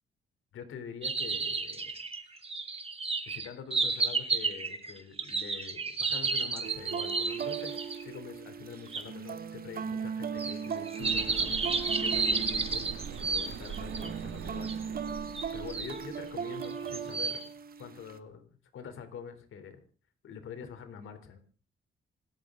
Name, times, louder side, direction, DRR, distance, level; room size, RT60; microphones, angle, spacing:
voice 1, 0.5-2.0 3.3-11.6 12.0-14.8 15.5-17.4 17.8-18.4 18.7-19.8 20.2-21.4, left 7 dB, 85° left, 9 dB, 3.6 m, -45 dB
sound 1, 1.0-8.0 8.9-9.0 10.4-14.1 14.6-14.7 15.3-16.0 16.6-17.4, right 4 dB, 30° right, 2.3 m, -32 dB
sound 2, 6.6-18.2, right 7 dB, 45° right, 1.4 m, -38 dB
sound 3, 11.0-16.3, right 7 dB, 70° right, 2.3 m, -42 dB
26.5 x 13.5 x 3.9 m, 0.38 s
wide cardioid pair, 140°, 20 cm